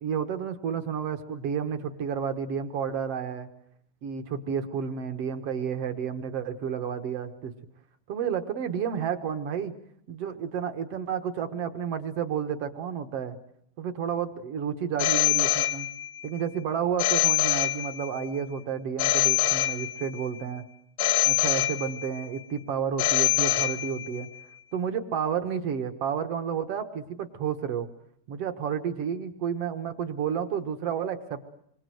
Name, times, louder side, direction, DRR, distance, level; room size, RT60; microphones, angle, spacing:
voice 1, 0.0-3.5 4.0-7.5 8.1-9.8 10.1-13.4 13.8-15.9 16.2-20.6 21.3-24.3 24.7-27.9 28.3-31.5, right 7 dB, 55° right, 9 dB, 1.8 m, -31 dB
Telephone, 15.0-16.2 17.0-18.2 19.0-20.2 21.0-22.2 23.0-24.2, left 16 dB, 70° left, 2.7 m, -25 dB
27.0 x 24.0 x 7.8 m, 0.71 s
omnidirectional pair, 4.3 m